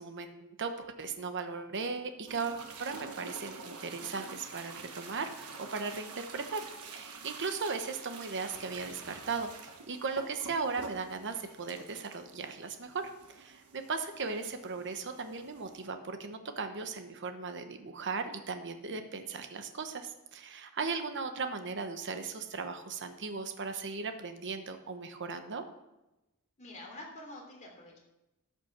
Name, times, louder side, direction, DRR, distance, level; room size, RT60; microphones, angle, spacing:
voice 1, 0.0-25.6, right 4 dB, 55° right, 7 dB, 1.0 m, -37 dB
sound 1, 2.3-15.9, right 4 dB, 85° right, 1.3 m, -47 dB
voice 2, 26.6-28.0, left 1 dB, 35° left, -1 dB, 3.2 m, -47 dB
13.5 x 5.8 x 6.0 m, 0.97 s
head